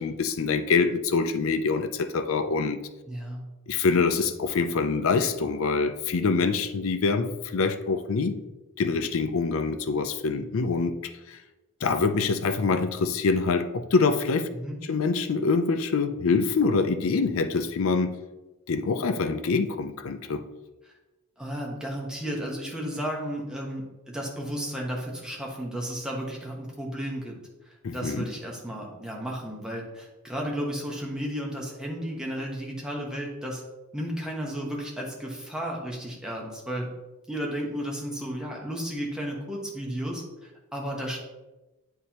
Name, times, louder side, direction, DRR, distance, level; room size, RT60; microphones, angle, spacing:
voice 1, 0.0-2.8 3.7-8.4 8.8-11.0 11.3-11.4 11.8-14.5 14.8-18.2 18.7-20.4 27.8-28.3, left 4 dB, 65° left, 0.5 m, -25 dB
voice 2, 3.1-3.4 14.5-14.8 21.4-27.3 27.6-33.6 33.9-36.9 37.3-41.2, equal, 5° right, 1.0 m, -33 dB
8.3 x 4.3 x 2.9 m
head